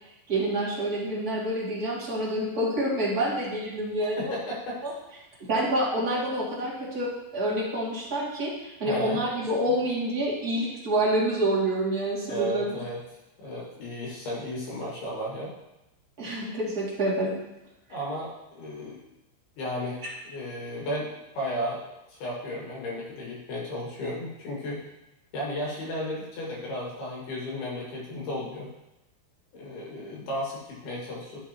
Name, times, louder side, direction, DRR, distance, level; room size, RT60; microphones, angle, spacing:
voice 1, 0.3-4.3 4.8-4.9 5.4-12.8 16.2-17.3 30.1-30.2, right 1 dB, 30° right, -7 dB, 1.8 m, -27 dB
voice 2, 4.2-4.8 8.9-9.2 12.3-13.0 13.4-15.5 17.9-19.0 19.6-21.8 22.1-24.8 25.3-28.7 29.5-31.4, equal, 60° left, -4 dB, 3.6 m, -34 dB
12.5 x 7.0 x 3.0 m, 0.92 s
omnidirectional pair, 5.4 m